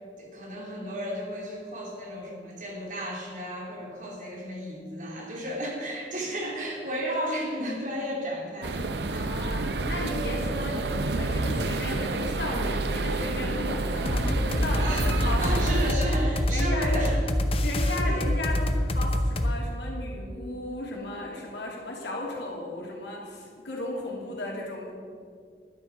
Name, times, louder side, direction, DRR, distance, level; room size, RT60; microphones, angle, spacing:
voice 1, 0.2-9.2 9.6-9.8 14.8-17.2 17.8-18.2, equal, 45° right, -2 dB, 2.9 m, -33 dB
sound 1, 8.6-15.9, right 2 dB, 70° right, 0.7 m, -29 dB
voice 2, 9.1-15.7 16.5-16.9 17.6-24.9, left 2 dB, 70° left, -2 dB, 3.0 m, -35 dB
sound 2, 14.1-19.6, left 1 dB, 30° left, 0.8 m, -25 dB
12.0 x 10.5 x 6.0 m, 2.1 s
head